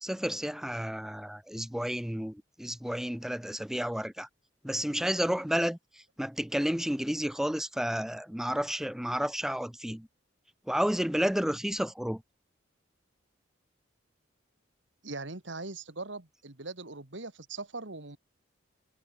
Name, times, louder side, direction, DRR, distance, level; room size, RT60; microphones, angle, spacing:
voice 1, 0.0-4.3 4.6-5.8 6.2-10.1 10.7-12.2, equal, ahead, 0.5 m, -31 dB
voice 2, 15.0-18.2, right 3 dB, 65° right, 2.2 m, -40 dB
head